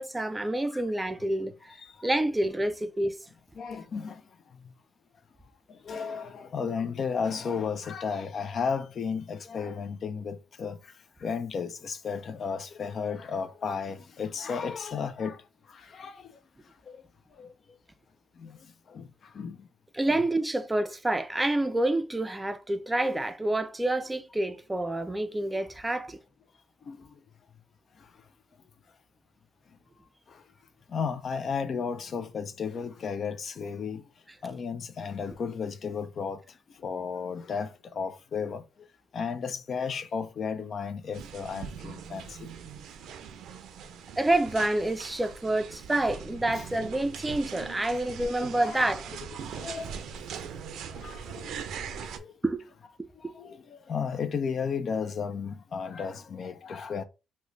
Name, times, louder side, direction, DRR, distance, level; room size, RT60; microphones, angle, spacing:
voice 1, 0.0-1.5 2.0-3.2 19.9-26.2 44.2-49.1 52.4-52.6 53.0-53.3, right 1 dB, 15° right, 0.4 m, -28 dB
voice 2, 1.8-2.1 3.6-4.2 5.7-10.9 11.2-15.4 15.7-16.4 16.9-17.0 17.4-17.5 18.4-18.6 18.9-19.7 20.1-20.2 26.9-27.1 30.3-30.4 30.9-34.0 34.4-36.4 36.8-38.6 39.1-42.5 46.5-46.7 48.6-50.0 50.9-51.6 52.0-52.3 53.2-57.0, left 6 dB, 55° left, 0.4 m, -34 dB
sound 1, 41.1-52.2, right 7 dB, 75° right, 0.4 m, -41 dB
3.0 x 2.1 x 3.8 m
cardioid pair, 90°, 0 cm